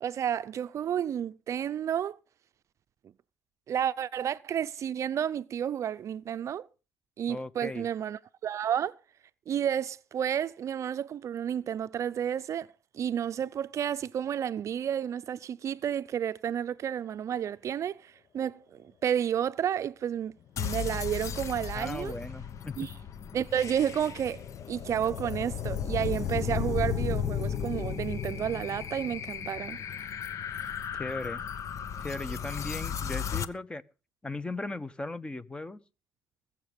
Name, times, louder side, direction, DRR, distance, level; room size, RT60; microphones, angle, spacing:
voice 1, 0.0-2.2 3.7-6.7 7.2-9.0 9.5-22.2 22.8-22.9 23.3-29.8, right 9 dB, 55° right, 0.6 m, -31 dB
voice 2, 7.3-7.9 21.7-22.7 30.9-31.4 32.0-33.8 34.2-35.8, left 2 dB, 15° left, 1.1 m, -37 dB
sound 1, 20.6-33.5, left 8 dB, 55° left, 1.0 m, -35 dB
21.0 x 7.3 x 5.2 m
supercardioid pair, 80°, 6 cm